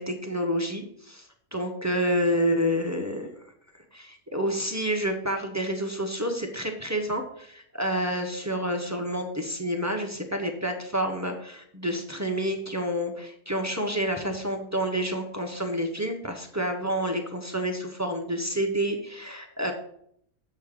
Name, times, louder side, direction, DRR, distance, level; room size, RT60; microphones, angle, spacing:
voice 1, 0.0-3.3 3.9-19.7, equal, 20° right, 3 dB, 0.5 m, -29 dB
7.5 x 3.6 x 6.5 m, 0.69 s
omnidirectional pair, 1.6 m